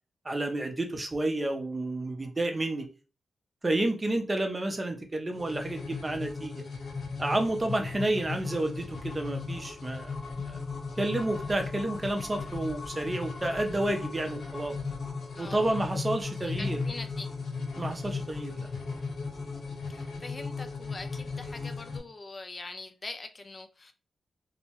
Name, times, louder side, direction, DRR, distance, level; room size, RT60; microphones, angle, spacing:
voice 1, 0.2-2.9 3.6-6.5 7.2-10.6 11.0-14.7 15.4-16.8 17.8-18.7, right 2 dB, 25° right, 0.6 m, -30 dB
sound 1, 5.3-22.0, left 4 dB, 70° left, 0.9 m, -36 dB
voice 2, 15.4-15.8 16.4-17.3 19.9-23.9, left 3 dB, 35° left, 0.3 m, -43 dB
2.7 x 2.1 x 2.9 m
cardioid pair, 85°, 0 cm